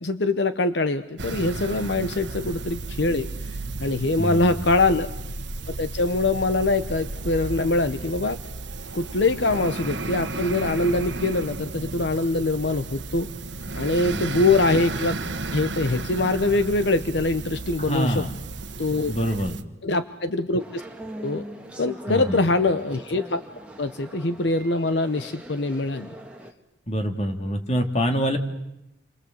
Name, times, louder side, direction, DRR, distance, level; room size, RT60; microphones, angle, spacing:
voice 1, 0.0-3.3 3.8-5.1 5.7-8.4 8.9-13.3 13.8-15.2 15.5-18.2 18.8-19.1 19.8-20.6 21.2-21.4 21.8-23.4 23.8-26.1, left 2 dB, 65° left, 10 dB, 0.9 m, -23 dB
sound 1, 1.2-19.6, right 2 dB, 75° right, 1.3 m, -33 dB
voice 2, 4.2-4.5 14.1-14.2 17.8-18.3 19.1-19.6 22.1-22.4 26.9-28.4, equal, 35° left, 5 dB, 2.4 m, -25 dB
sound 2, 20.6-26.5, right 1 dB, 5° right, 1.8 m, -40 dB
29.5 x 24.0 x 7.9 m, 0.88 s
head